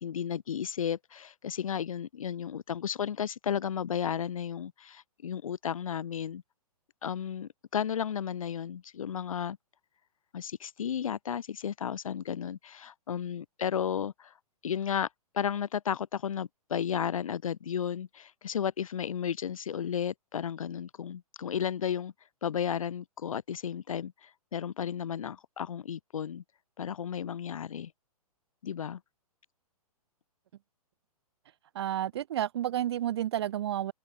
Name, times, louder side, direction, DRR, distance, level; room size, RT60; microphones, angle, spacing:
voice 1, 0.0-6.4 7.0-9.6 10.3-14.3 14.6-15.1 15.3-22.1 22.4-26.4 26.8-27.9 28.6-29.0, left 8 dB, 60° left, 0.7 m, -33 dB
voice 2, 31.7-33.9, right 12 dB, 45° right, 0.4 m, -31 dB
figure-of-eight pair, 120°, 19 cm